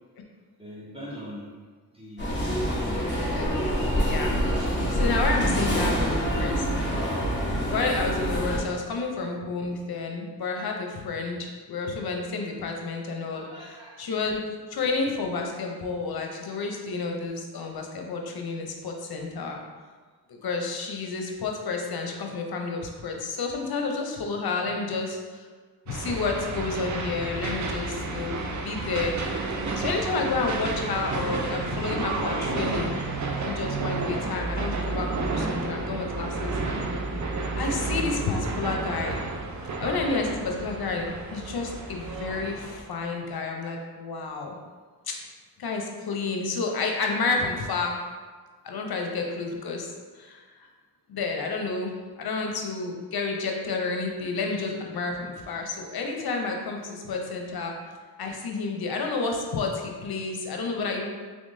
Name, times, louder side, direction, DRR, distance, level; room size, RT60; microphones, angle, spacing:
voice 1, 0.6-1.5 1.9-2.4 2.6-3.1 13.3-14.0 24.6-24.9 56.9-57.2, equal, 15° right, -7 dB, 1.3 m, -42 dB
sound 1, 2.2-8.6, equal, 25° left, 1.5 m, -26 dB
voice 2, 3.4-6.7 7.7-14.4 14.7-19.6 20.3-25.5 25.9-29.2 29.8-32.9 33.4-36.6 37.6-39.3 39.8-44.6 45.1-45.2 45.6-48.0 48.6-49.9 50.1-50.7 51.1-57.7 58.2-61.1, left 4 dB, 65° left, 2 dB, 0.7 m, -30 dB
sound 2, 25.9-42.8, right 3 dB, 45° right, 0.6 m, -31 dB
3.5 x 3.3 x 2.6 m, 1.5 s
cardioid pair, 45°, 40 cm